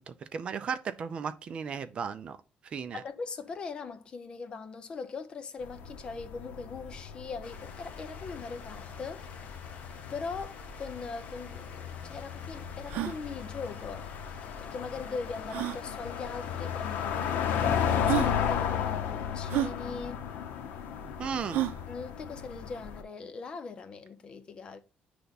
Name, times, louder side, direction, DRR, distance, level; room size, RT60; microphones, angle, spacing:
voice 1, 0.0-2.4 2.7-3.0 21.2-21.6, right 6 dB, 35° right, 0.4 m, -35 dB
voice 2, 2.9-9.3 10.1-14.1 14.6-20.3 21.9-24.8, left 4 dB, 30° left, 0.6 m, -40 dB
sound 1, 5.6-23.0, left 8 dB, 90° left, 0.9 m, -35 dB
sound 2, 7.4-18.2, left 6 dB, 50° left, 1.0 m, -50 dB
sound 3, 11.3-11.4 11.6-11.7 12.2-12.3 12.8-13.2 14.5-14.6 15.5-15.8 16.8-16.9 17.6-17.7 18.0-18.3 19.5-19.7 21.5-21.8, right 14 dB, 85° right, 0.5 m, -30 dB
9.3 x 3.4 x 4.0 m
cardioid pair, 165°, 3 cm